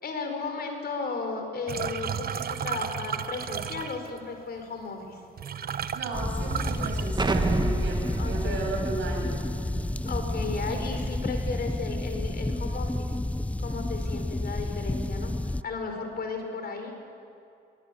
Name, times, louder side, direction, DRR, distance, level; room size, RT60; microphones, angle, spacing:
voice 1, 0.0-5.2 8.2-8.7 10.0-13.1 13.6-15.3 15.6-16.9, left 4 dB, 50° left, 5 dB, 4.5 m, -35 dB
sound 1, 1.7-4.2 5.0-5.1 5.4-7.8 8.1-8.6 8.9-9.6, right 8 dB, 50° right, 1.0 m, -33 dB
voice 2, 5.9-9.4, right 3 dB, 70° right, -1 dB, 7.5 m, -34 dB
sound 2, 6.1-15.6, left 1 dB, 5° left, 0.4 m, -30 dB
Explosion, 7.2-11.9, right 3 dB, 20° right, 1.4 m, -31 dB
23.0 x 18.5 x 8.5 m, 2.6 s
cardioid pair, 90°, 20 cm